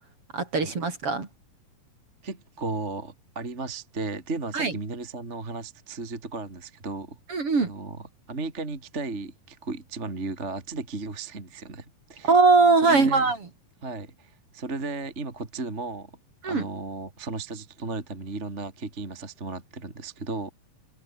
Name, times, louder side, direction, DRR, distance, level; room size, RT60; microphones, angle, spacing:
voice 1, 0.3-1.3 4.5-4.7 7.3-7.7 12.2-13.4 16.4-16.6, right 4 dB, 40° right, 4.4 m, -20 dB
voice 2, 2.2-7.2 7.6-12.3 12.8-13.3 13.8-16.1 16.4-20.5, right 3 dB, 20° right, 2.9 m, -35 dB
omnidirectional pair, 4.2 m